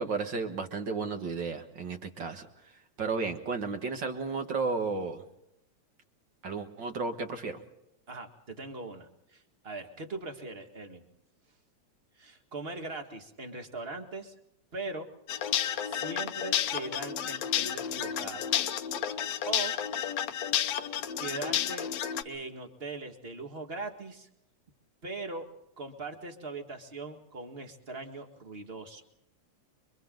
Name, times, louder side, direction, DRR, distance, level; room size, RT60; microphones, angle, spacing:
voice 1, 0.0-2.5 3.0-5.2 6.4-7.6, right 4 dB, 45° right, 6 dB, 1.8 m, -33 dB
voice 2, 8.1-11.0 12.2-14.3 14.7-15.1 15.8-18.5 19.5-19.7 21.2-21.9 22.2-24.3 25.0-25.5 25.8-29.0, right 3 dB, 25° right, 5 dB, 1.7 m, -40 dB
sound 1, 15.3-22.2, left 10 dB, 70° left, 2.1 m, -31 dB
30.0 x 24.0 x 3.9 m, 0.82 s
omnidirectional pair, 3.3 m